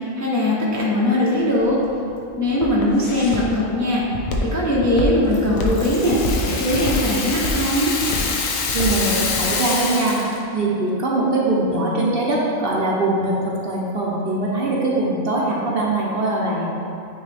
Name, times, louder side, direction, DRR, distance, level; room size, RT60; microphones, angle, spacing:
voice 1, 0.2-1.8 2.4-7.9, left 1 dB, 20° left, -6 dB, 0.6 m, -20 dB
Walk footsteps, 1.4-9.5, left 1 dB, 60° left, 0.9 m, -27 dB
Rattle (instrument), 5.3-10.4, left 4 dB, 90° left, 1.1 m, -26 dB
voice 2, 8.7-10.2 10.5-16.7, right 2 dB, 55° right, -4 dB, 0.9 m, -22 dB
9.3 x 3.1 x 3.4 m, 2.8 s
omnidirectional pair, 1.3 m